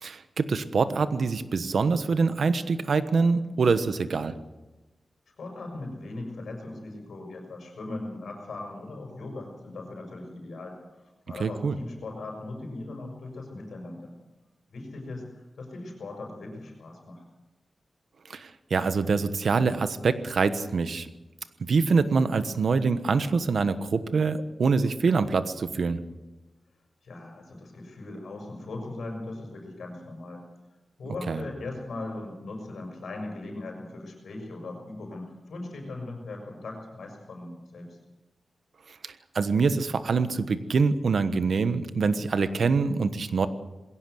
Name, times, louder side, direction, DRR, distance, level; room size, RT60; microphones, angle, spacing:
voice 1, 0.0-4.3 11.4-11.7 18.3-21.1 21.7-26.0 31.3-31.4 39.0-43.5, right 4 dB, 60° right, 11 dB, 1.2 m, -25 dB
voice 2, 5.4-14.1 14.7-17.2 27.0-30.4 31.0-38.0, left 2 dB, 80° left, 3 dB, 6.4 m, -39 dB
21.0 x 17.0 x 8.0 m, 1.1 s
wide cardioid pair, 135°, 0 cm